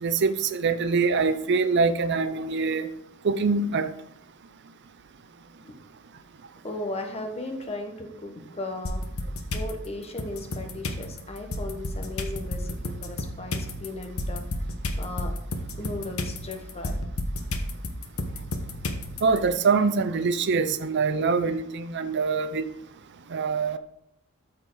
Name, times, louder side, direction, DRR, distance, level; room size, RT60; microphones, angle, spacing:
voice 1, 0.0-2.9 3.2-3.9 19.2-22.6 23.3-23.8, right 4 dB, 55° right, 11 dB, 0.5 m, -24 dB
voice 2, 6.6-9.1 9.5-14.5 15.0-15.3 15.7-17.0, left 2 dB, 30° left, 4 dB, 1.1 m, -36 dB
sound 1, 8.8-9.7 10.2-19.4, left 1 dB, 75° left, 1.0 m, -32 dB
13.0 x 4.4 x 3.8 m, 0.77 s
head